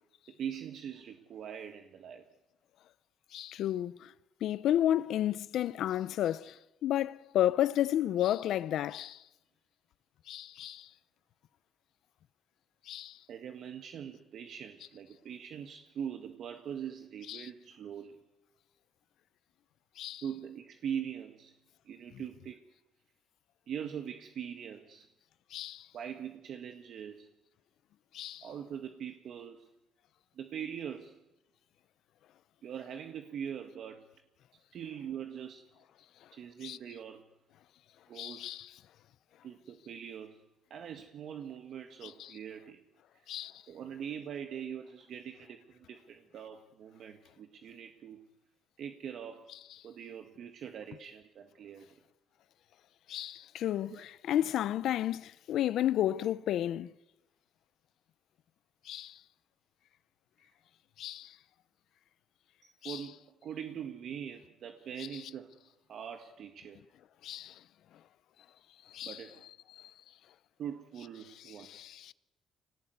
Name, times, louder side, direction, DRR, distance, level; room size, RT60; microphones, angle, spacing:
voice 1, 0.4-2.2 13.3-18.2 20.2-21.6 21.9-22.6 23.7-25.1 25.9-27.3 28.4-29.7 30.4-31.2 32.6-34.1 34.7-35.6 36.3-37.3 38.1-38.5 39.4-40.4 40.7-42.8 43.1-43.2 43.7-48.2 48.8-49.5 49.8-51.9 53.9-54.1 62.8-65.6 65.9-66.8 69.0-69.4 70.6-71.7, right 8 dB, 70° right, 1.8 m, -42 dB
voice 2, 3.3-4.1 4.4-9.2 10.3-10.9 12.9-13.2 17.3-17.5 20.0-20.2 25.5-25.9 28.1-28.4 36.6-36.8 38.2-38.7 42.0-42.3 43.3-43.6 53.1-56.9 58.9-59.2 61.0-61.4 62.8-63.0 67.2-67.5 68.9-69.2 69.8-69.9 71.5-72.1, left 12 dB, 80° left, 0.8 m, -32 dB
25.5 x 18.5 x 9.6 m
cardioid pair, 90°, 0 cm